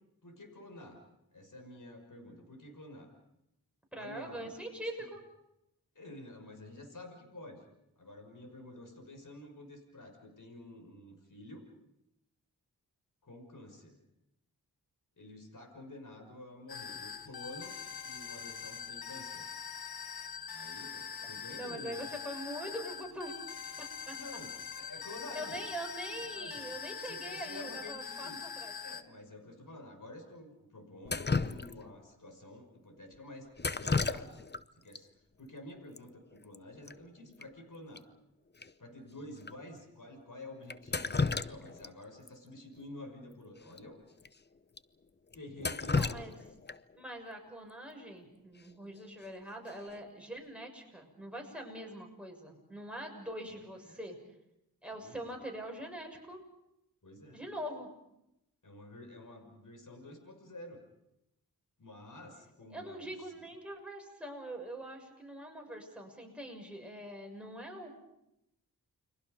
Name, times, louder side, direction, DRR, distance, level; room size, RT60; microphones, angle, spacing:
voice 1, 0.2-1.0 1.3-3.1 3.9-4.5 5.0-5.1 5.9-7.6 8.0-11.7 13.2-14.0 15.2-17.7 18.0-19.4 20.5-22.0 24.1-25.6 26.1-26.7 27.0-28.4 28.8-34.5 34.7-35.1 35.4-38.0 38.8-44.0 45.3-46.4 53.8-54.0 54.9-55.4 57.0-57.5 58.6-60.8 61.8-63.5, left 1 dB, 55° left, 5 dB, 6.1 m, -50 dB
voice 2, 3.9-5.2 21.2-21.3 21.6-23.3 24.1-24.2 25.3-28.7 45.9-46.3 46.9-54.2 54.8-56.4 57.3-57.9 62.7-68.0, right 1 dB, 5° right, 1 dB, 6.7 m, -43 dB
sound 1, 16.7-29.0, left 7 dB, 75° left, 1.2 m, -43 dB
Drip, 31.0-32.0 33.6-34.6 34.9-35.0 36.0-36.1 36.3-36.6 36.9-37.0 37.4-37.5 37.9-38.0 38.6-38.7 39.4-39.5 40.7-41.9 42.3-42.4 43.7-43.8 44.2-44.3 44.8-44.9 45.3-47.0 49.0-49.3 49.7-50.1, left 4 dB, 25° left, 0.8 m, -33 dB
29.5 x 23.5 x 5.3 m, 0.84 s
cardioid pair, 50°, 38 cm